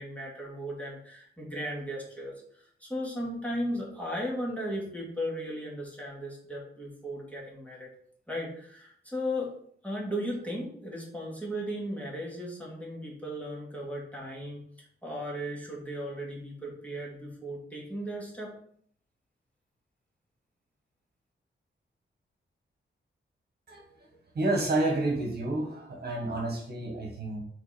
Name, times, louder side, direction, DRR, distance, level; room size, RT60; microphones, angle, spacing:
voice 1, 0.0-7.9 8.3-9.5 9.8-14.6 15.0-18.5, equal, 5° left, -4 dB, 2.0 m, -36 dB
voice 2, 23.7-24.1 24.3-27.4, right 2 dB, 55° right, 1 dB, 1.5 m, -30 dB
6.0 x 3.9 x 4.3 m, 0.63 s
wide cardioid pair, 130°, 20 cm